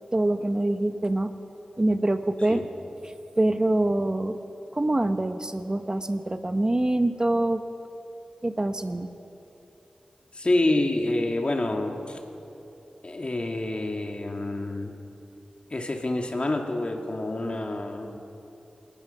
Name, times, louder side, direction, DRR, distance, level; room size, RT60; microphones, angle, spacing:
voice 1, 0.1-1.3 1.8-2.6 3.0-4.4 4.7-7.6 8.4-9.1, right 1 dB, 30° right, 8 dB, 1.0 m, -25 dB
voice 2, 10.3-12.2 13.0-15.0 15.7-18.2, left 2 dB, 45° left, 3 dB, 2.3 m, -27 dB
26.0 x 19.0 x 5.7 m, 2.8 s
cardioid pair, 55°, 3 cm